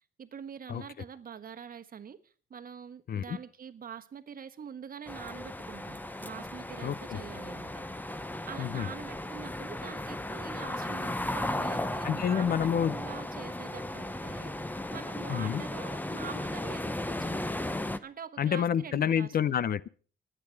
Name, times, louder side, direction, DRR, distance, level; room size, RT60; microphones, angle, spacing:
voice 1, 0.2-17.5 18.0-19.3, right 7 dB, 45° right, 1.3 m, -45 dB
sound 1, 5.1-18.0, left 1 dB, 10° left, 0.9 m, -36 dB
voice 2, 6.8-7.2 8.6-8.9 12.0-13.0 15.3-15.6 18.4-19.9, left 8 dB, 50° left, 0.6 m, -28 dB
26.5 x 9.1 x 4.6 m
cardioid pair, 90°, 20 cm